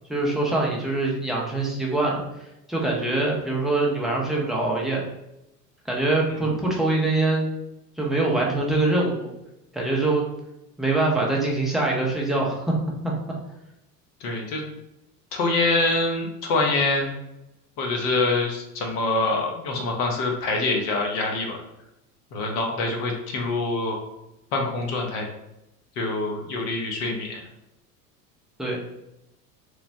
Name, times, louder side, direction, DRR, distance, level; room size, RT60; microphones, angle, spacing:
voice 1, 0.1-2.2 2.7-5.0 5.9-7.5 8.0-9.3 9.7-10.2 10.8-12.7 13.0-13.1 28.6-28.8, right 2 dB, ahead, -3 dB, 0.5 m, -23 dB
voice 2, 14.2-14.6 15.3-17.1 17.8-21.6 22.3-24.0 24.5-25.3 26.0-27.4, left 2 dB, 70° left, 1 dB, 0.8 m, -25 dB
3.2 x 2.0 x 2.6 m, 0.89 s
hypercardioid pair, 80°, 48 cm